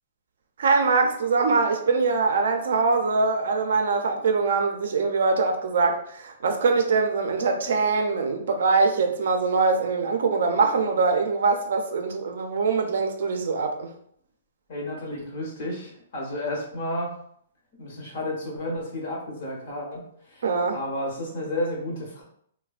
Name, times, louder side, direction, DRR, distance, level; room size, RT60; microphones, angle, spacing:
voice 1, 0.6-13.9 20.4-20.8, right 4 dB, 60° right, 4 dB, 0.4 m, -23 dB
voice 2, 14.7-17.1 17.8-20.0 20.3-20.4 20.7-22.2, left 1 dB, 40° left, -2 dB, 0.9 m, -31 dB
3.2 x 2.1 x 2.4 m, 0.66 s
hypercardioid pair, 175°, 0 cm